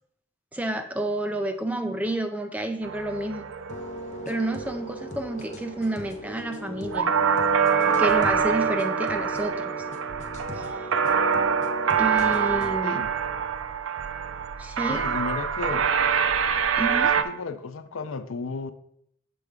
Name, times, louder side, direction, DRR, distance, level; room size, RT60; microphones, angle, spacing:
voice 1, 0.5-3.4 4.3-7.2 7.9-9.7 10.5-10.9 12.0-13.0 14.6-15.2 16.8-17.2, right 1 dB, 5° right, 0.4 m, -30 dB
sound 1, 2.8-17.2, right 7 dB, 85° right, 0.4 m, -25 dB
sound 2, 3.7-12.8, left 1 dB, 35° left, 0.6 m, -38 dB
voice 2, 14.9-15.9 17.2-18.7, left 4 dB, 90° left, 0.5 m, -33 dB
6.8 x 3.5 x 5.0 m
head